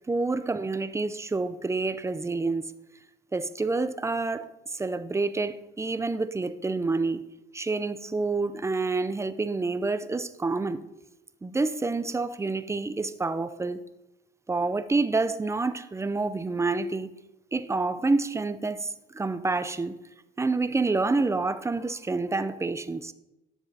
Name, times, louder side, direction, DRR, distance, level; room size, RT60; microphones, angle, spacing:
voice 1, 0.1-2.7 3.3-7.3 7.5-10.8 11.4-13.8 14.5-17.1 17.5-19.9 20.4-23.1, right 3 dB, 15° right, 0.4 m, -28 dB
10.5 x 7.1 x 2.7 m
cardioid pair, 90°, 20 cm